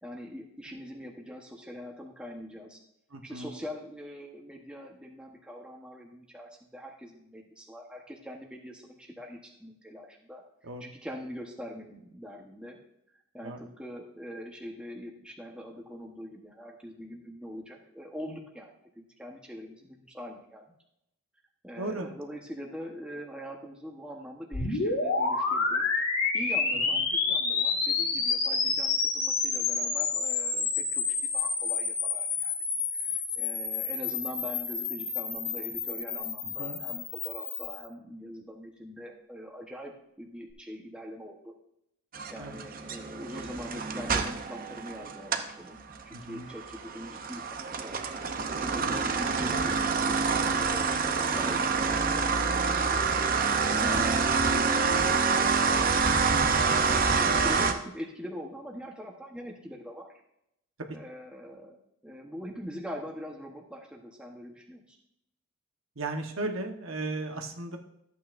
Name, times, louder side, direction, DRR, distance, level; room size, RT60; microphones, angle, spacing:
voice 1, 0.0-2.8 3.2-10.4 10.8-12.8 13.3-18.7 19.0-20.6 21.6-25.9 26.3-31.0 31.3-32.5 32.9-41.5 42.3-48.1 48.6-53.0 53.6-55.6 56.4-60.1 60.8-61.8 62.0-65.0, equal, 5° right, 0 dB, 1.1 m, -43 dB
voice 2, 3.1-3.5 10.6-10.9 13.4-13.6 21.8-22.1 26.9-27.0 36.6-36.8 42.4-42.6 46.1-46.5 48.8-49.0 56.3-56.6 66.0-67.8, right 2 dB, 75° right, 3 dB, 1.2 m, -36 dB
sound 1, 24.5-37.8, left 4 dB, 85° left, 2.1 m, -29 dB
sound 2, 42.1-45.5 45.9-57.7, right 4 dB, 40° right, 0.7 m, -27 dB
13.5 x 8.5 x 2.6 m, 0.79 s
head